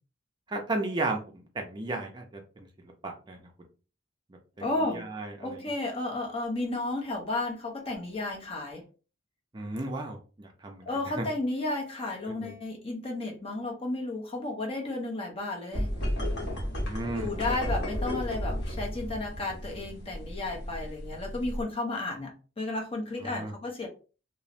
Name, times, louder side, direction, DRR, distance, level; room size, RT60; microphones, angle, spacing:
voice 1, 0.5-1.2 1.5-3.4 4.8-5.6 9.5-10.9 11.2-11.3 12.3-12.5 16.5-17.3 23.2-23.5, right 2 dB, 25° right, 2 dB, 0.4 m, -34 dB
voice 2, 4.6-5.0 5.4-8.8 10.9-15.9 17.2-23.9, left 2 dB, 30° left, 0 dB, 0.7 m, -33 dB
sound 1, 15.7-21.6, equal, 65° left, 0.9 m, -33 dB
3.0 x 2.0 x 2.5 m, 0.35 s
head